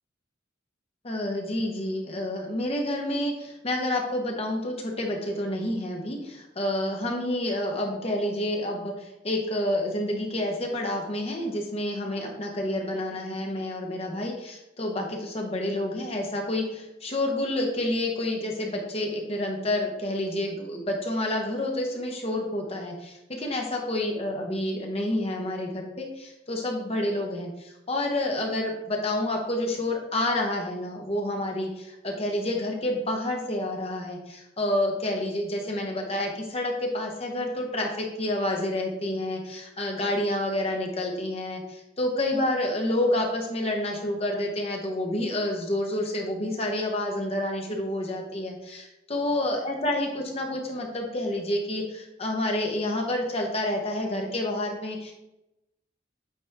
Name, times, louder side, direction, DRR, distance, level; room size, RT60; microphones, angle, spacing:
voice 1, 1.0-55.1, left 1 dB, 35° left, 1 dB, 1.2 m, -29 dB
8.5 x 4.2 x 3.6 m, 0.92 s
head